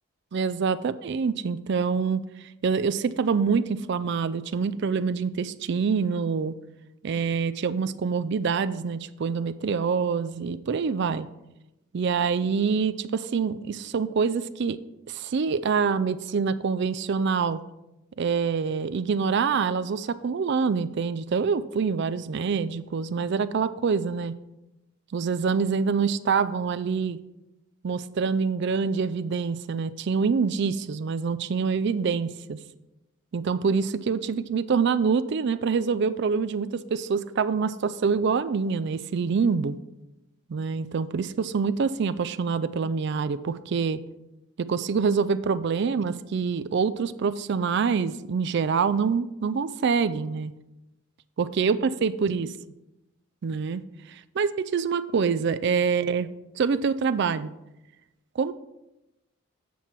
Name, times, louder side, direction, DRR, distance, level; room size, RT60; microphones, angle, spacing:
voice 1, 0.3-2.2 2.6-6.5 7.0-11.3 11.9-14.8 15.1-17.6 18.2-24.3 25.1-27.2 27.8-32.6 33.3-39.8 40.5-44.0 44.6-50.5 51.4-52.5 53.4-53.8 54.1-56.3 56.6-57.5 58.4-58.5, right 5 dB, 55° right, 14 dB, 0.4 m, -26 dB
8.5 x 5.8 x 4.6 m, 0.96 s
head